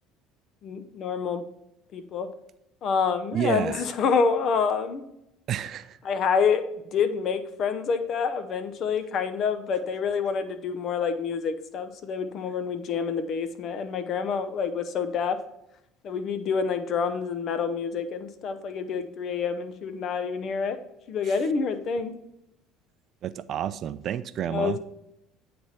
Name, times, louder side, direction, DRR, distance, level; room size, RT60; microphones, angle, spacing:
voice 1, 0.6-1.4 1.9-2.3 2.8-5.0 6.0-6.7 6.9-15.4 16.0-20.8 21.1-22.1 24.5-24.8, left 6 dB, 55° left, 10 dB, 0.7 m, -27 dB
voice 2, 3.3-3.9 5.5-6.0 21.2-21.4 23.2-24.8, right 10 dB, 50° right, 14 dB, 0.4 m, -30 dB
8.7 x 3.4 x 4.2 m, 0.83 s
hypercardioid pair, 75°, 0 cm